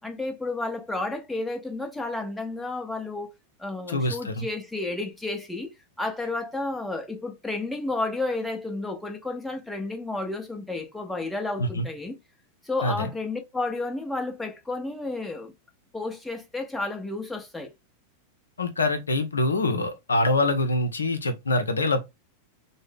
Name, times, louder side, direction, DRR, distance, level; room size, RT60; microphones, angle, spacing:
voice 1, 0.0-3.3 3.6-12.2 12.6-15.5 15.9-17.7, left 2 dB, 5° left, 0.8 m, -31 dB
voice 2, 3.9-4.5 11.6-11.9 12.8-13.1 18.6-22.0, left 2 dB, 75° left, 0.6 m, -25 dB
3.6 x 2.1 x 3.4 m
figure-of-eight pair, 90°, 0 cm